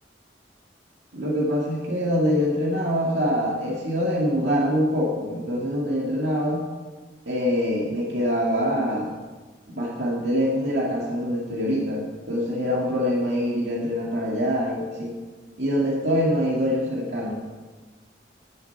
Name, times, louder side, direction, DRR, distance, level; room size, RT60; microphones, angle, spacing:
voice 1, 1.1-6.6 7.3-9.1 9.7-15.1 15.6-17.3, equal, 75° right, -3 dB, 2.1 m, -24 dB
12.0 x 7.0 x 9.2 m, 1.4 s
head